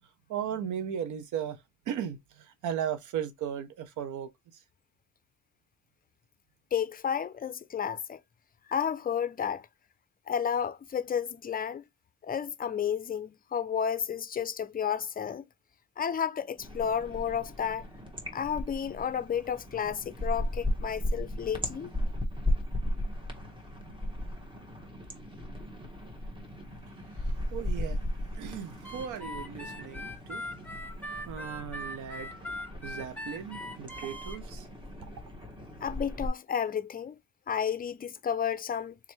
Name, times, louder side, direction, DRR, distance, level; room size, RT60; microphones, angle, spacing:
voice 1, 0.3-4.6 27.1-28.0 28.3-30.5 31.2-32.4 32.8-34.7 35.0-35.1, right 9 dB, 80° right, 0.8 m, -37 dB
voice 2, 6.7-8.2 8.7-9.6 10.3-11.8 12.2-15.4 16.0-17.8 18.3-21.9 35.8-37.2 37.5-39.0, left 8 dB, 30° left, 0.5 m, -32 dB
sound 1, 16.6-36.3, left 1 dB, 15° right, 1.4 m, -36 dB
Harmonica, 28.8-34.4, equal, 5° left, 1.0 m, -40 dB
3.6 x 3.2 x 3.1 m
cardioid pair, 90°, 30 cm